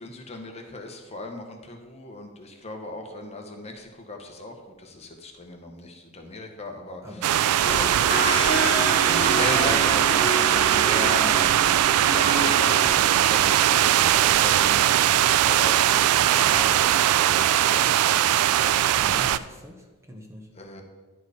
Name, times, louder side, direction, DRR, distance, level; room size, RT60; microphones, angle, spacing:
voice 1, 0.0-8.2 8.5-14.9 15.4-18.9 20.5-20.8, left 2 dB, 30° left, 3 dB, 0.9 m, -37 dB
voice 2, 7.0-7.4 11.1-11.4 19.0-20.5, left 1 dB, 15° right, 2 dB, 0.7 m, -42 dB
sound 1, 7.2-19.4, right 11 dB, 85° right, 0.3 m, -20 dB
sound 2, 7.6-12.9 13.4-13.5, equal, 55° left, 2.1 m, -29 dB
10.5 x 4.5 x 4.9 m, 1.3 s
head